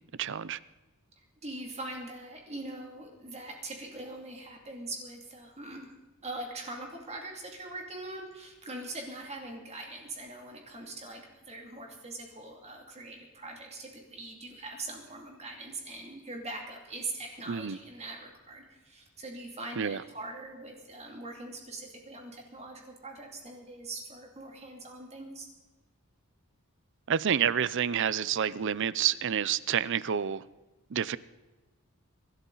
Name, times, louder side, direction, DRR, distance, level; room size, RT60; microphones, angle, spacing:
voice 1, 0.2-0.6 17.5-17.8 19.8-20.0 27.1-30.4 30.9-31.2, right 8 dB, 60° right, 18 dB, 0.5 m, -28 dB
voice 2, 1.4-5.9 6.2-25.5, right 2 dB, 30° right, 1 dB, 2.5 m, -42 dB
24.0 x 12.5 x 4.0 m, 1.1 s
head